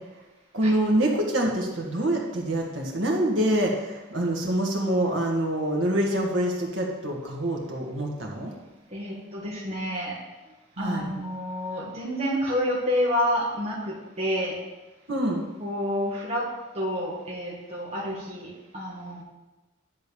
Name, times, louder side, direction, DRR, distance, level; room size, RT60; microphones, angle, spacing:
voice 1, 0.5-8.5 10.8-11.1 15.1-15.4, right 1 dB, 65° right, -1 dB, 1.8 m, -26 dB
voice 2, 8.9-10.2 10.8-14.6 15.6-16.5 16.7-19.2, equal, 30° right, -6 dB, 1.6 m, -29 dB
10.5 x 4.0 x 6.9 m, 1.1 s
head